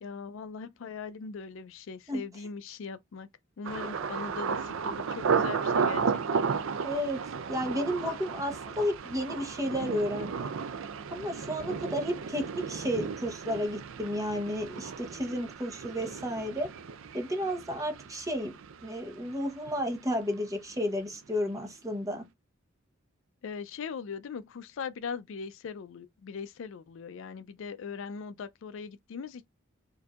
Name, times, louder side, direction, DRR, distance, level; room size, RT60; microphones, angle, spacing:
voice 1, 0.0-3.3 3.6-6.0 6.3-6.4 23.4-29.5, left 5 dB, 65° left, 0.4 m, -40 dB
Thunder, 3.6-19.4 19.7-20.3 20.7-21.0, right 5 dB, 70° right, 0.4 m, -34 dB
voice 2, 6.8-7.2 7.5-10.5 11.1-16.7 17.1-18.5 18.8-22.2, equal, 15° right, 0.9 m, -32 dB
4.6 x 2.6 x 2.3 m
head